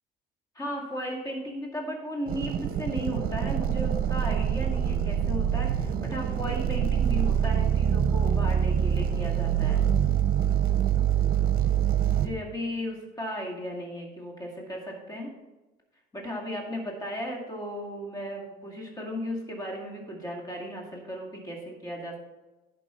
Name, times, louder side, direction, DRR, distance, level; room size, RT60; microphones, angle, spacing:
voice 1, 0.5-9.8 12.1-15.3 16.1-22.2, equal, 20° left, -1 dB, 2.2 m, -35 dB
sound 1, 2.3-12.3, right 9 dB, 60° right, 0.7 m, -25 dB
10.5 x 5.4 x 4.4 m, 1.1 s
cardioid pair, 110°, 17 cm